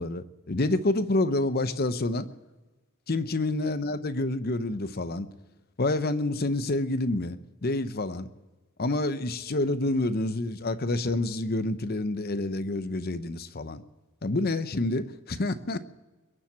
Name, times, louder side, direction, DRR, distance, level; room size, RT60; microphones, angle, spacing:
voice 1, 0.0-2.3 3.1-5.3 5.8-8.3 8.8-13.8 14.2-15.8, left 2 dB, 45° left, 12 dB, 0.8 m, -28 dB
22.0 x 7.4 x 8.6 m, 1.1 s
head